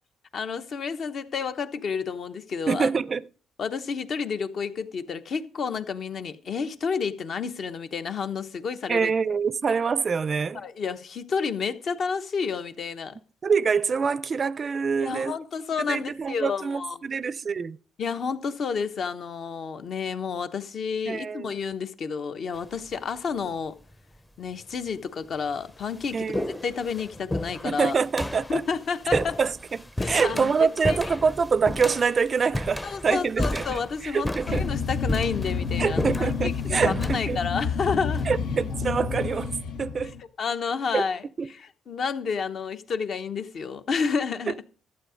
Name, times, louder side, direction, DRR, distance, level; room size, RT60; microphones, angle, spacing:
voice 1, 0.3-2.9 3.6-9.1 10.5-13.2 15.0-17.0 18.0-23.8 24.4-28.0 28.5-29.4 30.0-31.1 32.8-38.3 40.4-41.2 41.5-44.6, left 5 dB, 55° left, 1.0 m, -30 dB
voice 2, 2.7-3.2 8.9-10.6 13.4-15.4 15.8-17.8 21.1-21.6 26.1-26.6 27.6-28.6 29.1-29.5 30.0-34.6 35.8-37.4 38.3-40.2 40.9-41.1 41.4-41.5 44.5-44.6, right 5 dB, 40° right, 0.4 m, -25 dB
sound 1, 22.5-23.0 23.9-24.0 24.9-25.0 25.3-38.9, left 1 dB, 10° left, 0.6 m, -33 dB
sound 2, 34.5-40.2, left 5 dB, 85° left, 1.3 m, -29 dB
12.0 x 8.0 x 5.1 m
cardioid pair, 90°, 0 cm